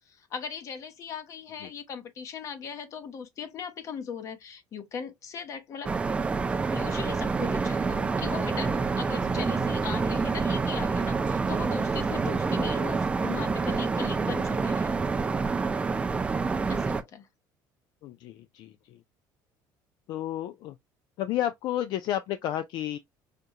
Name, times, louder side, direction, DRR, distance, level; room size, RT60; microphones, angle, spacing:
voice 1, 0.1-5.9 6.7-15.0 16.7-17.3, left 6 dB, 40° left, 0.8 m, -39 dB
sound 1, 5.8-17.0, right 4 dB, 15° right, 0.3 m, -27 dB
voice 2, 18.0-19.0 20.1-20.8 21.2-23.0, left 12 dB, 60° left, 0.4 m, -31 dB
5.0 x 2.2 x 2.7 m
cardioid pair, 155°, 8 cm